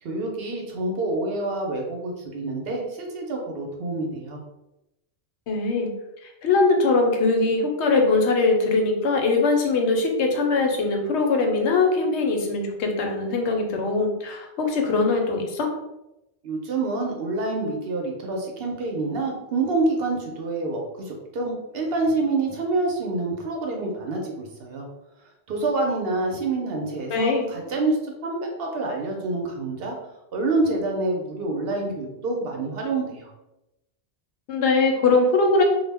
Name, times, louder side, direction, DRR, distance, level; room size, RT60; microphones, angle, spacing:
voice 1, 0.0-4.4 16.4-24.9 25.5-30.0 30.3-33.3, right 2 dB, 65° right, 1 dB, 0.8 m, -27 dB
voice 2, 5.5-5.9 6.4-15.7 27.1-27.5 34.5-35.6, left 3 dB, 85° left, 2 dB, 0.9 m, -21 dB
2.2 x 2.0 x 3.3 m, 0.91 s
omnidirectional pair, 1.1 m